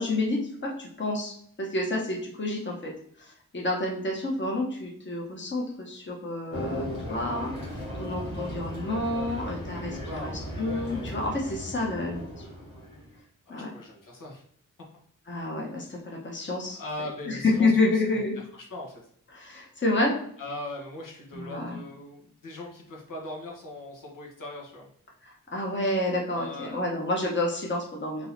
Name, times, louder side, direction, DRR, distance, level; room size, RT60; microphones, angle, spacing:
voice 1, 0.0-2.9 3.2-7.5 8.0-10.3 10.6-12.4 13.5-13.7 15.3-16.8 17.3-18.3 19.3-20.1 21.3-21.8 25.2-28.3, left 2 dB, 35° left, -1 dB, 1.1 m, -29 dB
sound 1, 6.5-13.1, equal, 85° left, 1.8 m, -36 dB
voice 2, 10.0-10.5 13.5-14.4 15.8-16.0 16.7-18.2 18.5-19.0 20.4-24.9 26.3-26.8, left 1 dB, 70° left, -2 dB, 1.4 m, -40 dB
3.8 x 2.9 x 4.0 m, 0.62 s
wide cardioid pair, 75°, 33 cm